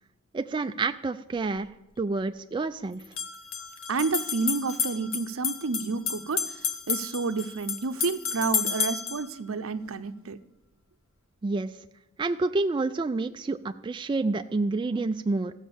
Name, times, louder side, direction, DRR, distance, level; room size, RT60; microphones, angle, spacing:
voice 1, 0.3-1.7 2.0-3.0 11.4-11.7 12.2-15.5, right 3 dB, 20° right, 0.3 m, -28 dB
sound 1, 1.4-1.5 3.0-9.3, left 6 dB, 65° left, 1.1 m, -31 dB
voice 2, 3.9-6.6 6.9-10.4, right 4 dB, 65° right, 0.6 m, -30 dB
15.0 x 7.3 x 6.9 m
head